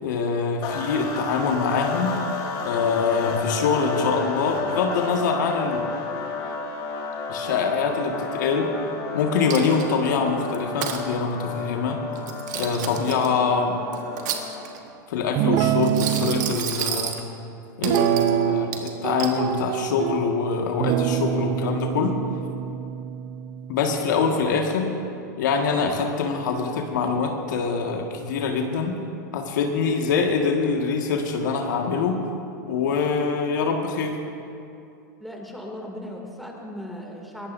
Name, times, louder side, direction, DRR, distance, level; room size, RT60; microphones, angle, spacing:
voice 1, 0.0-2.1 2.6-5.9 7.3-8.7 9.1-12.0 12.5-13.7 15.1-17.2 17.8-22.2 23.7-24.9 25.4-28.9 29.3-32.2 32.7-34.2, left 5 dB, 70° left, 2 dB, 1.9 m, -24 dB
sound 1, 0.6-14.8, left 4 dB, 45° left, 2.3 m, -32 dB
Coin (dropping), 9.5-10.1 10.5-11.0 12.2-13.3 13.9-14.9 15.8-17.2 17.8-18.3 18.7-19.4, right 9 dB, 65° right, 1.6 m, -31 dB
Guitar, 15.4-16.6 17.8-18.8 19.0-20.2 20.8-24.3, right 13 dB, 45° right, 0.6 m, -25 dB
voice 2, 35.2-37.5, left 1 dB, ahead, -1 dB, 2.6 m, -37 dB
22.0 x 18.5 x 2.7 m, 2.6 s
hypercardioid pair, 105°, 10 cm